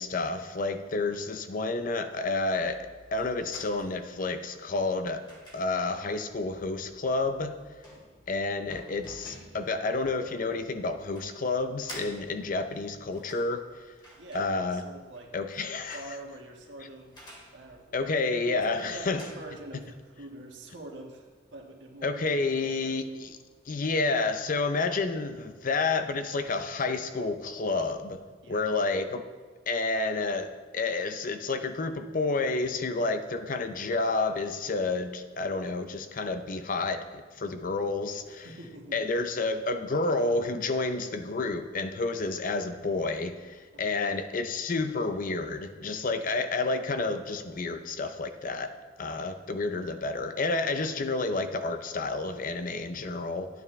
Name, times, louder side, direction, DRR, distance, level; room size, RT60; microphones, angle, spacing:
voice 1, 0.0-5.2 5.5-7.6 8.3-13.6 14.3-14.8 15.3-16.0 17.9-19.2 22.0-23.4 23.7-28.2 28.5-29.2 29.7-38.5 38.9-53.5, left 3 dB, 45° left, 8 dB, 0.6 m, -30 dB
sound 1, 2.1-20.3, equal, 25° left, 2.4 m, -52 dB
voice 2, 14.2-15.4 15.9-17.2 17.5-23.0 28.4-28.8 38.4-39.0 43.7-43.9, right 1 dB, 80° right, 0 dB, 1.5 m, -45 dB
11.0 x 9.2 x 3.2 m, 1.4 s
head